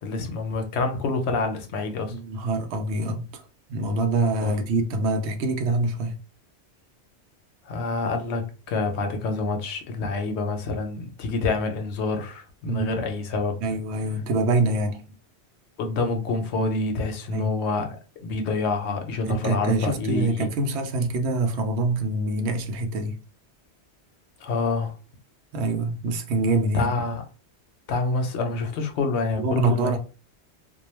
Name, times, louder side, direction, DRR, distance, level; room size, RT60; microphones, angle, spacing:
voice 1, 0.0-2.1 4.4-4.5 7.7-13.6 15.8-20.5 24.4-24.9 26.7-27.2 27.9-30.0, left 3 dB, 80° left, 0.9 m, -27 dB
voice 2, 2.1-3.4 3.7-6.2 12.6-12.9 13.6-15.0 17.3-17.5 19.3-23.2 25.5-26.9 29.4-30.0, right 2 dB, 75° right, 0.8 m, -25 dB
2.3 x 2.2 x 3.0 m
omnidirectional pair, 1.1 m